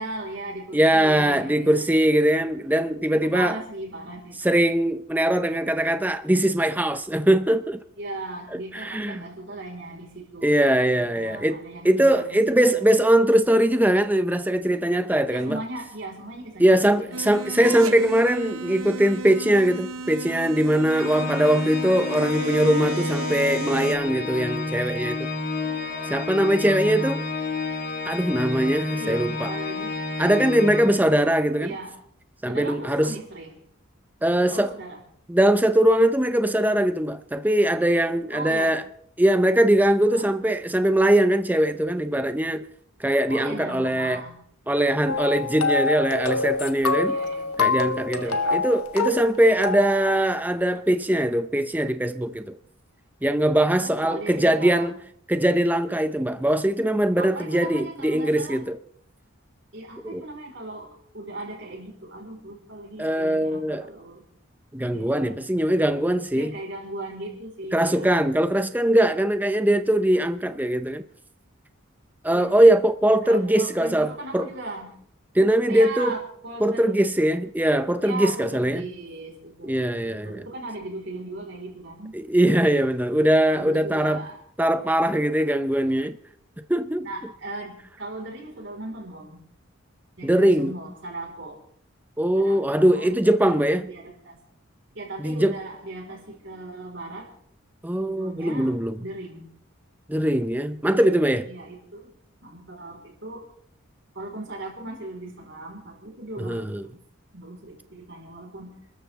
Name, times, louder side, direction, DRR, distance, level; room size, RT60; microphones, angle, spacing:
voice 1, 0.0-1.8 3.1-4.5 8.0-12.3 12.7-12.8 15.3-17.7 25.6-27.0 28.9-30.0 31.6-32.0 32.5-33.5 34.5-35.0 38.3-38.7 40.1-40.3 43.3-44.4 47.0-48.6 53.6-55.0 57.2-58.6 59.7-64.2 64.8-65.4 66.3-68.1 72.3-72.6 73.2-75.0 75.7-77.0 78.0-82.2 83.5-84.4 87.0-89.4 90.2-91.6 92.3-93.6 93.8-94.4 94.9-97.3 98.0-99.5 101.4-102.1 102.4-103.5 104.1-107.0 107.3-109.0, right 2 dB, 55° right, 4.9 m, -38 dB
voice 2, 0.7-3.6 4.4-7.8 8.7-9.2 10.4-11.6 11.8-15.6 16.6-25.3 26.1-27.2 28.1-29.5 30.2-31.7 32.4-33.1 34.2-34.7 35.3-38.8 39.2-42.6 43.0-44.2 44.7-47.2 47.6-52.5 53.2-54.9 55.3-58.8 60.1-60.2 63.0-63.8 64.7-66.5 67.7-71.0 72.2-74.5 75.3-76.2 76.6-78.8 79.6-80.4 82.1-84.2 84.6-86.2 86.7-87.1 90.2-90.7 92.2-93.8 95.2-95.5 97.8-98.9 100.1-101.5 106.4-106.8, right 1 dB, 10° right, 0.6 m, -21 dB
sound 1, 17.1-24.0, right 3 dB, 85° right, 1.3 m, -34 dB
Organ, 20.9-31.5, left 3 dB, 40° left, 2.1 m, -30 dB
sound 2, 45.1-50.2, left 4 dB, 90° left, 1.3 m, -26 dB
28.0 x 13.5 x 3.7 m
head